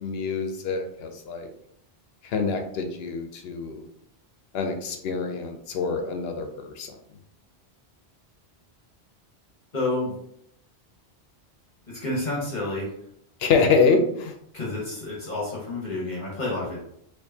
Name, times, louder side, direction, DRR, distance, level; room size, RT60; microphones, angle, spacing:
voice 1, 0.0-1.5 2.3-3.8 4.5-6.9 13.4-14.3, left 4 dB, 75° left, 5 dB, 0.9 m, -25 dB
voice 2, 9.7-10.1 11.9-12.9 14.5-16.8, left 2 dB, 45° left, -5 dB, 1.2 m, -29 dB
4.4 x 2.6 x 2.7 m, 0.72 s
omnidirectional pair, 1.1 m